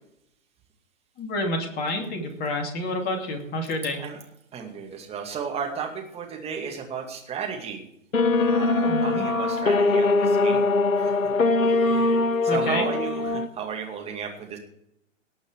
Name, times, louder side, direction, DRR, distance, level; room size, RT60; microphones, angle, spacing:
voice 1, 1.2-4.0 8.8-9.2 12.5-12.9, left 1 dB, 25° left, 3 dB, 2.7 m, -29 dB
voice 2, 4.5-7.8 8.3-10.7 11.0-11.2 11.7-14.6, right 6 dB, 15° right, 1 dB, 2.4 m, -34 dB
sound 1, 8.1-13.5, left 3 dB, 85° left, 1.0 m, -22 dB
19.0 x 6.5 x 4.9 m, 0.77 s
figure-of-eight pair, 120°, 39 cm